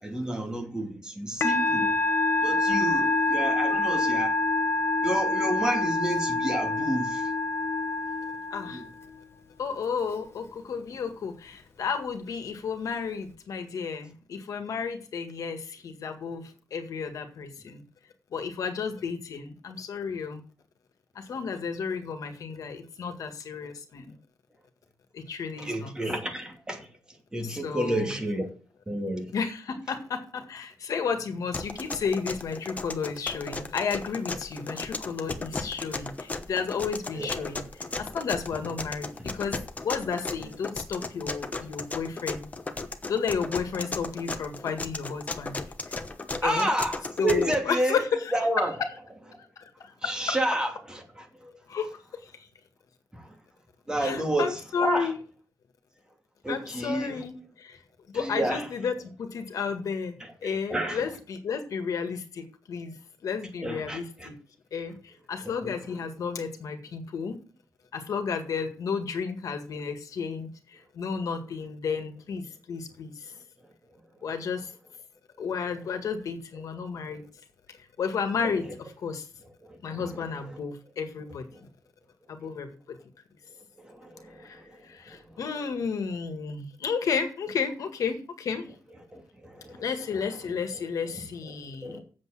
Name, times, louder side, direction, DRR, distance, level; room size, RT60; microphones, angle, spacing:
voice 1, 0.0-1.9 2.4-4.4 5.0-7.2 8.7-8.8 25.6-26.9 27.3-28.5 28.9-29.3 37.1-37.3 46.4-48.0 48.3-48.7 50.0-50.7 51.1-51.5 53.1-53.2 53.9-54.5 54.8-55.1 56.4-57.2 58.2-58.6 60.4-61.0 63.6-64.3 65.6-65.8 78.4-78.5 79.9-80.0 83.8-84.4 89.1-89.8 91.8-92.0, right 1 dB, 10° right, 2.7 m, -30 dB
Musical instrument, 1.4-9.0, left 2 dB, 45° left, 1.2 m, -26 dB
voice 2, 8.5-8.8 9.6-17.8 18.3-20.4 21.2-24.1 25.1-25.9 27.4-28.2 29.3-39.5 39.8-42.5 43.1-45.6 45.9-46.0 46.4-46.7 47.2-49.0 49.6-50.4 51.7-51.9 52.2-52.5 54.0-55.2 56.5-57.8 58.1-63.0 63.2-64.4 64.7-67.4 67.9-73.3 74.2-74.7 75.4-77.2 78.0-79.3 79.8-81.7 82.3-83.0 84.4-88.7 89.8-92.0, left 6 dB, 70° left, 1.8 m, -32 dB
sound 1, 31.5-47.6, left 3 dB, 25° left, 1.0 m, -35 dB
8.2 x 7.5 x 7.4 m
wide cardioid pair, 160°, 6 cm